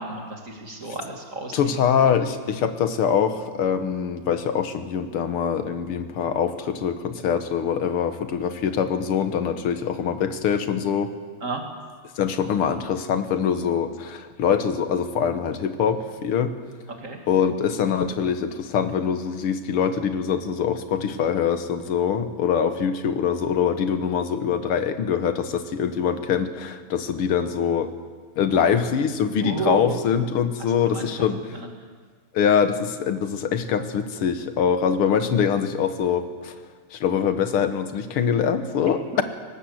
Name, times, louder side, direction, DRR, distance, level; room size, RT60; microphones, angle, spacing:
voice 1, 0.0-1.8 11.4-11.6 17.0-17.2 28.5-28.8 29.4-30.0 30.9-31.3 31.5-31.7 39.1-39.2, right 3 dB, 35° right, 2 dB, 2.6 m, -31 dB
voice 2, 1.5-11.1 12.2-16.5 17.3-27.9 28.4-31.4 32.3-36.5 36.9-39.2, left 7 dB, 80° left, 9 dB, 2.1 m, -23 dB
19.0 x 18.5 x 8.0 m, 1.5 s
omnidirectional pair, 2.4 m